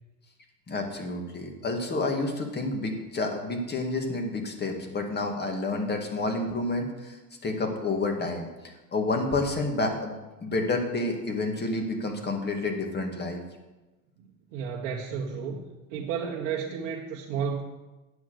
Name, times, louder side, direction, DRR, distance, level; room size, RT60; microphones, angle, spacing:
voice 1, 0.7-7.2 7.4-8.5 8.9-10.1 10.4-13.4, left 2 dB, 20° left, 3 dB, 2.3 m, -29 dB
voice 2, 14.5-15.6 15.9-17.6, right 6 dB, 65° right, -3 dB, 1.5 m, -32 dB
9.5 x 6.2 x 8.0 m, 1.1 s
hypercardioid pair, 95°, 44 cm